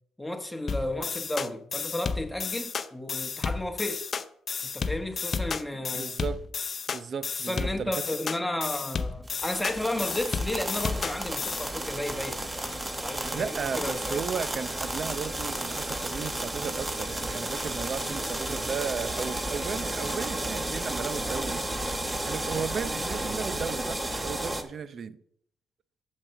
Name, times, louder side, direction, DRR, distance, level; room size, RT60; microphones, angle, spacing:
voice 1, 0.2-4.1 4.6-6.1 7.4-14.2, left 1 dB, 5° left, 1.2 m, -33 dB
sound 1, 0.7-11.7, left 5 dB, 45° left, 0.6 m, -32 dB
voice 2, 5.9-6.4 6.9-8.0 13.3-21.6 22.3-25.2, right 6 dB, 50° right, 0.6 m, -35 dB
sound 2, 9.3-24.6, right 1 dB, 15° right, 1.1 m, -32 dB
7.4 x 6.6 x 5.7 m
cardioid pair, 90°, 0 cm